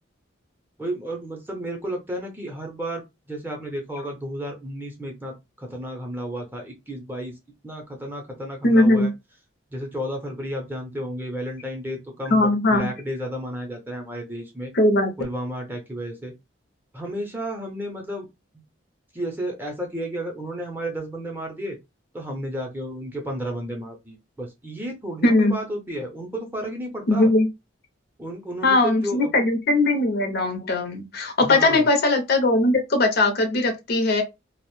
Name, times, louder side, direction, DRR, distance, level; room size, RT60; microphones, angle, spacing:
voice 1, 0.8-3.0 3.3-7.3 7.6-9.1 9.7-14.7 15.2-16.3 16.9-18.3 18.5-18.6 19.1-21.8 22.1-27.3 28.2-29.3 31.4-31.9, equal, 10° right, 0.6 m, -32 dB
voice 2, 8.6-9.1 12.3-12.9 14.7-15.1 25.2-25.5 27.1-27.5 28.6-34.2, left 2 dB, 50° left, 0.6 m, -19 dB
2.5 x 2.0 x 3.0 m
head